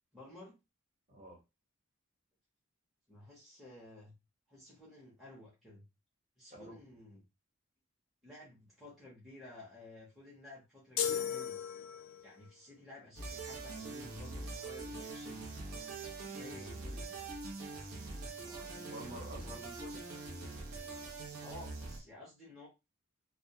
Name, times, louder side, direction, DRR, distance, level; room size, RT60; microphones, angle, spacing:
voice 1, 0.1-0.5 3.1-4.1 4.5-5.9 6.4-7.2 8.2-11.6 12.2-15.5 16.2-17.1 21.4-22.7, left 1 dB, ahead, -6 dB, 0.7 m, -53 dB
voice 2, 1.1-1.4 6.5-6.8 18.4-20.0, right 1 dB, 25° right, -2 dB, 0.9 m, -49 dB
sound 1, 11.0-12.3, left 8 dB, 70° left, 0.4 m, -35 dB
sound 2, 13.2-22.0, right 3 dB, 85° right, 0.7 m, -43 dB
2.2 x 2.2 x 2.7 m, 0.25 s
head